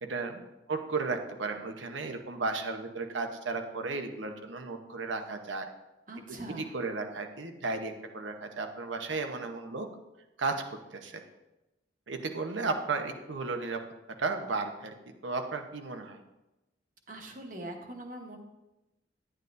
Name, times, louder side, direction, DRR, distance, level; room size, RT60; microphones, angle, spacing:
voice 1, 0.0-5.7 6.6-9.9 10.4-10.5 10.9-11.2 12.1-13.8 14.2-14.9 15.2-16.2, right 3 dB, 85° right, 5 dB, 0.9 m, -34 dB
voice 2, 6.1-6.7 17.1-18.4, right 1 dB, 45° right, 2 dB, 1.2 m, -42 dB
11.0 x 8.9 x 2.6 m, 1.0 s
head